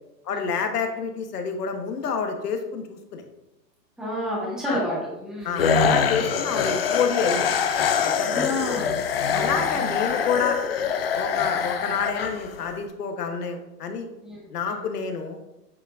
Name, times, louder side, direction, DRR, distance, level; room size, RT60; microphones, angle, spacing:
voice 1, 0.2-3.2 4.6-4.8 5.4-7.5 8.0-8.5 9.3-10.6 11.1-14.1 14.5-15.4, left 5 dB, 65° left, 5 dB, 1.3 m, -28 dB
voice 2, 4.0-5.8 6.4-6.5 8.2-9.0 9.3-10.0 14.2-14.9, left 1 dB, ahead, -6 dB, 1.3 m, -31 dB
sound 1, 5.6-12.8, left 7 dB, 40° left, 0.4 m, -24 dB
8.2 x 4.5 x 2.6 m, 0.92 s
hypercardioid pair, 140°, 50 cm